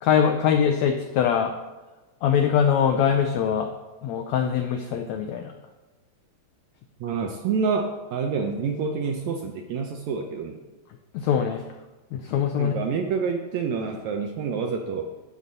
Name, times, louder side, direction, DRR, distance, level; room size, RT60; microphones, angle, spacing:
voice 1, 0.0-1.5 2.2-3.7 4.0-5.5 11.1-11.6 12.1-12.7, left 8 dB, 85° left, 5 dB, 1.5 m, -22 dB
voice 2, 7.0-10.6 12.5-15.1, right 5 dB, 75° right, 3 dB, 1.7 m, -28 dB
10.5 x 4.1 x 7.5 m, 1.1 s
omnidirectional pair, 3.9 m